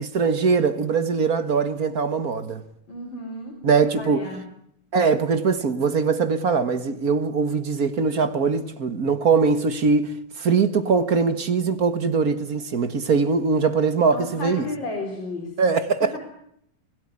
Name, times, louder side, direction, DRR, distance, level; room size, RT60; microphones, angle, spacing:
voice 1, 0.0-2.6 3.6-4.3 4.9-14.6 15.6-16.2, right 5 dB, 45° right, 1.7 m, -22 dB
voice 2, 2.9-3.6 4.0-4.4 14.1-15.5, left 2 dB, 60° left, 5.0 m, -32 dB
25.0 x 17.5 x 9.5 m
omnidirectional pair, 2.4 m